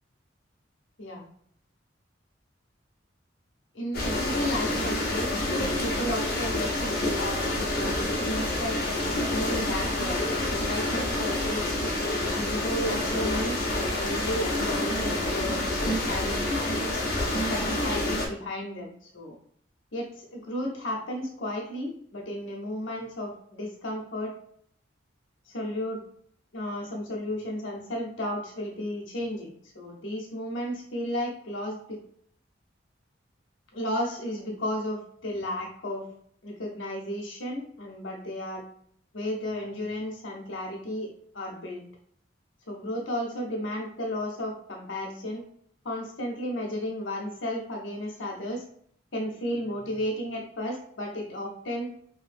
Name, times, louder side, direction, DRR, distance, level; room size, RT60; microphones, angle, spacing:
voice 1, 3.7-5.3 5.8-8.8 9.3-11.7 12.3-15.6 16.1-16.5 17.5-19.4 19.9-24.3 25.5-26.0 26.5-32.0 33.7-36.0 36.4-38.6 39.1-41.1 41.3-41.8 42.7-45.4 45.8-48.6 49.1-51.9, left 1 dB, 80° left, 0 dB, 0.9 m, -33 dB
sound 1, 3.9-18.3, left 1 dB, 50° left, 0.8 m, -28 dB
3.0 x 2.7 x 2.6 m, 0.64 s
head